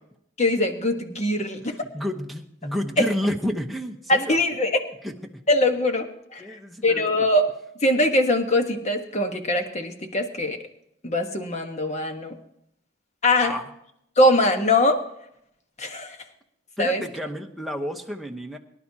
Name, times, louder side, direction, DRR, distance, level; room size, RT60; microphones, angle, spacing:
voice 1, 0.4-1.7 3.0-3.1 4.1-4.8 5.5-6.1 6.3-7.4 7.8-10.6 11.0-12.4 13.2-13.5 14.2-15.0 15.8-16.2 16.8-17.0, left 1 dB, 35° left, 5 dB, 1.3 m, -22 dB
voice 2, 1.6-4.4 5.0-5.4 6.4-7.1 13.4-13.6 16.8-18.6, equal, ahead, 2 dB, 1.0 m, -30 dB
23.5 x 11.0 x 2.9 m, 0.75 s
head